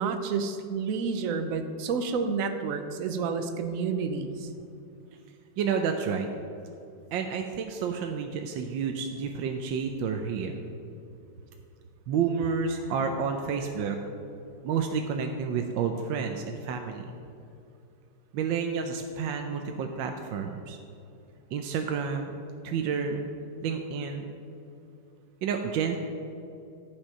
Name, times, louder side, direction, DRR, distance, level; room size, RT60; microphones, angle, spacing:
voice 1, 0.0-4.5, right 5 dB, 60° right, 7 dB, 0.9 m, -30 dB
voice 2, 5.6-6.3 7.1-10.6 12.1-14.0 14.6-17.1 18.3-20.8 21.5-23.3 23.6-24.3 25.4-26.0, right 6 dB, 75° right, 4 dB, 1.4 m, -30 dB
12.0 x 7.3 x 5.3 m, 2.6 s
omnidirectional pair, 2.2 m